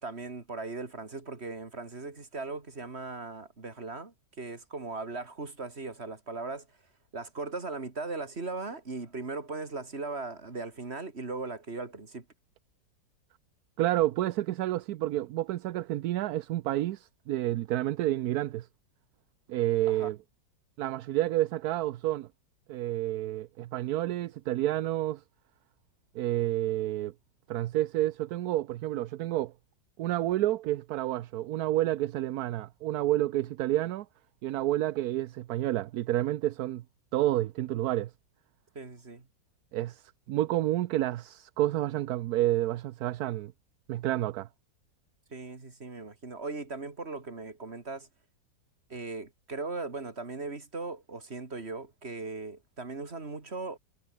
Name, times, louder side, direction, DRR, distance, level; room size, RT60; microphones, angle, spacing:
voice 1, 0.0-6.7 7.1-12.3 19.9-20.1 38.7-39.3 45.3-48.1 48.9-53.8, right 3 dB, 35° right, 3.1 m, -38 dB
voice 2, 13.8-18.7 19.5-20.2 20.8-22.3 22.7-25.2 26.1-27.1 27.5-29.5 30.0-34.1 34.4-36.8 37.1-38.1 39.7-40.0 40.3-43.5 43.9-44.5, right 14 dB, 70° right, 1.0 m, -29 dB
omnidirectional pair, 1.9 m